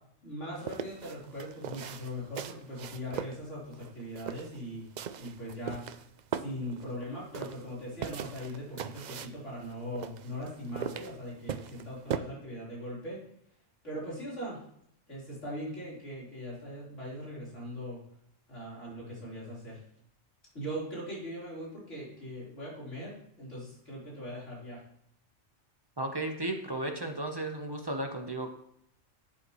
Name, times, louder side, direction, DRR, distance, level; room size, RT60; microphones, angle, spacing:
voice 1, 0.2-5.8 6.4-13.2 13.8-14.6 15.1-18.0 18.5-19.8 20.5-24.8, equal, 65° left, -6 dB, 4.5 m, -40 dB
sound 1, 0.5-12.2, right 8 dB, 85° right, 0.4 m, -40 dB
voice 2, 26.0-28.5, right 1 dB, 20° right, 3 dB, 1.0 m, -34 dB
12.0 x 8.5 x 3.1 m, 0.72 s
omnidirectional pair, 1.3 m